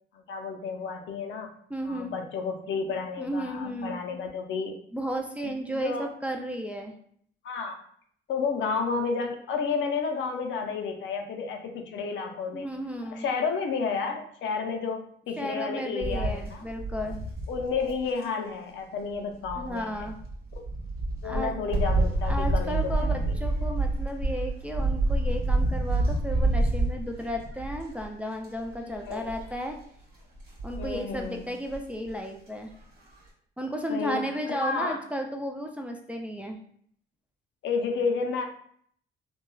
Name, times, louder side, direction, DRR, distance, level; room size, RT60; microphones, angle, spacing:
voice 1, 0.1-1.5 1.8-4.8 5.4-6.1 7.4-7.8 8.3-12.7 13.1-16.6 17.5-20.1 21.2-23.3 28.9-29.3 30.8-31.5 33.9-35.0 37.6-38.5, left 5 dB, 70° left, 4 dB, 0.5 m, -31 dB
voice 2, 1.7-2.1 3.2-4.0 4.9-6.9 12.5-13.2 15.4-17.2 19.5-20.2 21.2-21.5 22.2-29.8 30.6-32.7 33.6-36.6, equal, 5° right, 2 dB, 0.3 m, -34 dB
sound 1, 16.0-18.2 19.5-28.1 28.4-28.7 29.0-29.5 30.4-31.2 31.7-31.8 32.1-32.2, right 2 dB, 50° right, 1.0 m, -28 dB
3.0 x 2.2 x 2.2 m, 0.62 s
cardioid pair, 90°, 20 cm